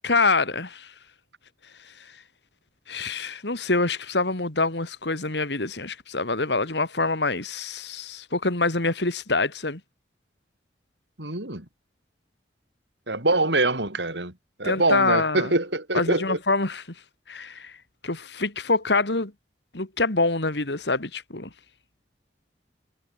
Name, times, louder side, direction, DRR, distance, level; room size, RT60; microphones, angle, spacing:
voice 1, 0.0-0.9 2.9-9.8 14.6-15.5 15.9-16.8 17.3-17.7 18.0-19.3 19.7-21.5, left 3 dB, 75° left, 2.9 m, -25 dB
voice 2, 11.2-11.7 13.1-14.3 14.6-16.4, right 2 dB, 80° right, 7.0 m, -24 dB
head